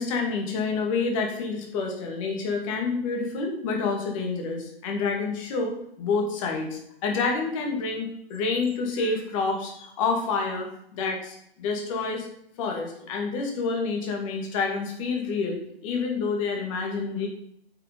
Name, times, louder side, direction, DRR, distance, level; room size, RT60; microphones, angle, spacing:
voice 1, 0.0-12.3 12.6-17.3, left 4 dB, 30° left, 2 dB, 2.4 m, -28 dB
9.1 x 5.8 x 5.5 m, 0.72 s
figure-of-eight pair, 125°, 31 cm